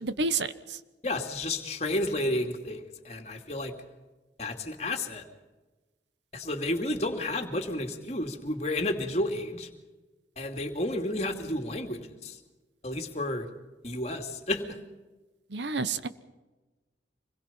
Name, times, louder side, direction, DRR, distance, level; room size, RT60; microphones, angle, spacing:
voice 1, 0.0-0.8 15.5-16.1, right 3 dB, 75° right, 12 dB, 1.1 m, -30 dB
voice 2, 1.0-3.7 4.4-5.2 6.3-9.7 10.4-12.4 12.8-13.5 13.8-14.8, left 1 dB, 35° left, 4 dB, 2.6 m, -31 dB
26.0 x 21.5 x 5.7 m, 1.2 s
head